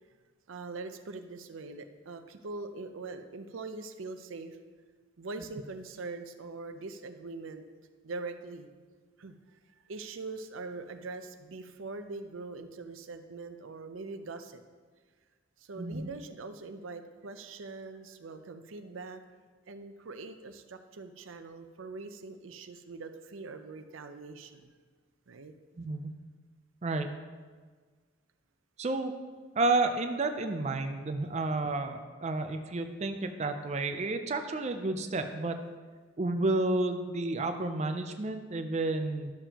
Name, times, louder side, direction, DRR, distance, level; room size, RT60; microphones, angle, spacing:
voice 1, 0.5-4.6 5.2-7.7 8.0-8.7 9.2-9.3 9.9-14.6 15.6-19.2 19.7-24.7 25.3-25.5, right 3 dB, 80° right, 8 dB, 0.6 m, -42 dB
voice 2, 15.8-16.1 25.8-26.1 26.8-27.2 28.8-29.1 29.6-35.6 36.2-39.3, right 2 dB, 35° right, 6 dB, 0.4 m, -31 dB
12.0 x 6.9 x 2.9 m, 1.5 s
head